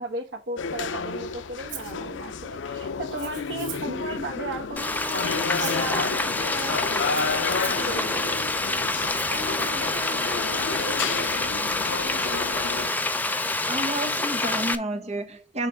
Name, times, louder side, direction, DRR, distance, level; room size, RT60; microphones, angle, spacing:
voice 1, 0.0-9.0 9.3-11.2, right 1 dB, 70° right, 1.4 m, -36 dB
sound 1, 0.6-12.9, left 5 dB, 85° left, 0.5 m, -31 dB
Rattle (instrument), 1.7-2.0 3.1-4.0 5.0-5.9 7.0-7.9 9.0-9.7, right 10 dB, 90° right, 1.1 m, -41 dB
Frying (food), 4.8-14.8, left 2 dB, 10° left, 0.5 m, -27 dB
voice 2, 13.7-15.7, right 1 dB, 35° right, 1.2 m, -30 dB
6.6 x 3.4 x 4.9 m
head